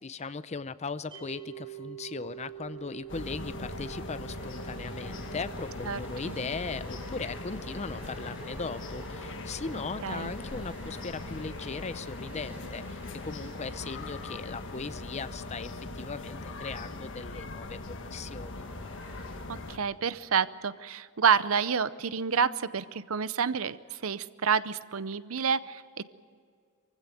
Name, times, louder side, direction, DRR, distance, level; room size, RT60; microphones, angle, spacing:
voice 1, 0.0-18.7, left 4 dB, 30° left, 14 dB, 0.6 m, -38 dB
sound 1, 1.1-12.3, right 12 dB, 25° right, 7.1 m, -49 dB
sound 2, 2.3-19.4, equal, 5° right, 6.9 m, -49 dB
sound 3, 3.1-19.8, left 2 dB, 55° left, 1.5 m, -40 dB
voice 2, 19.7-25.8, right 6 dB, 65° right, 16 dB, 0.7 m, -28 dB
23.5 x 15.5 x 9.2 m, 2.1 s
head